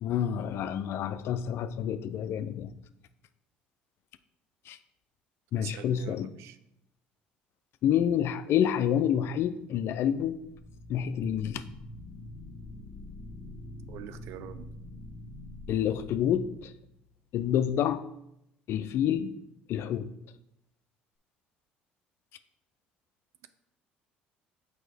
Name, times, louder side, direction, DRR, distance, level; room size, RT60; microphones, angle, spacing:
voice 1, 0.0-2.7 4.7-4.8 5.5-6.3 7.8-10.4 10.9-11.6 15.7-16.7 17.3-18.1 18.7-19.4 19.7-20.1, left 9 dB, 60° left, 12 dB, 0.4 m, -28 dB
voice 2, 5.6-6.6 13.9-14.7, right 10 dB, 70° right, 12 dB, 0.4 m, -44 dB
sound 1, 10.3-17.1, left 1 dB, 25° left, 1.2 m, -45 dB
6.2 x 4.8 x 3.4 m, 0.80 s
supercardioid pair, 70°, 5 cm